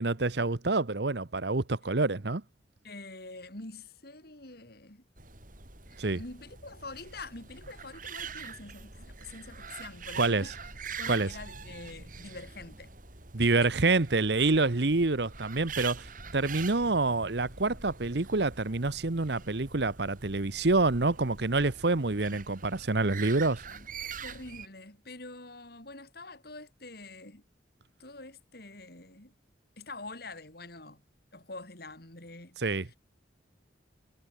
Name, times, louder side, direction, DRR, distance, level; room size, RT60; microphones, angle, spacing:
voice 1, 0.0-2.4 6.0-6.2 10.2-10.4 11.1-11.3 13.3-23.6 32.6-32.9, right 3 dB, 65° right, 1.1 m, -27 dB
voice 2, 2.8-5.0 5.9-10.7 11.0-12.9 13.4-13.7 23.7-23.9 24.2-27.4 28.0-29.3 29.8-31.0 31.3-33.0, left 2 dB, 55° left, 4.4 m, -46 dB
sound 1, 5.2-24.7, right 6 dB, 45° right, 5.3 m, -44 dB
head